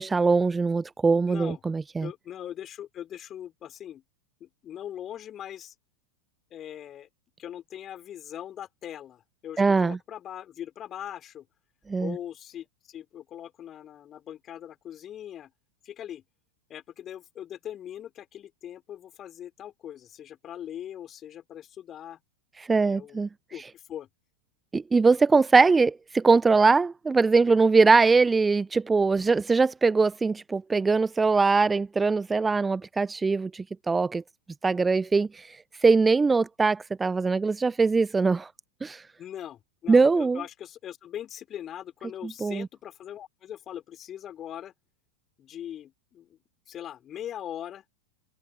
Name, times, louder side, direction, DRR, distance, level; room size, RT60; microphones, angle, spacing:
voice 1, 0.0-2.1 9.6-10.0 11.9-12.1 22.6-23.3 24.7-34.2 34.6-38.5 38.8-39.0 39.9-40.4 42.2-42.7, right 4 dB, 10° right, 0.7 m, -22 dB
voice 2, 1.3-1.6 2.0-4.0 4.4-5.7 6.5-7.1 7.4-11.5 12.0-15.5 15.8-16.2 16.7-22.2 22.8-23.2 23.5-24.1 39.2-44.7 45.4-46.4 46.7-47.8, left 10 dB, 30° left, 5.6 m, -41 dB
figure-of-eight pair, 90°, 0 cm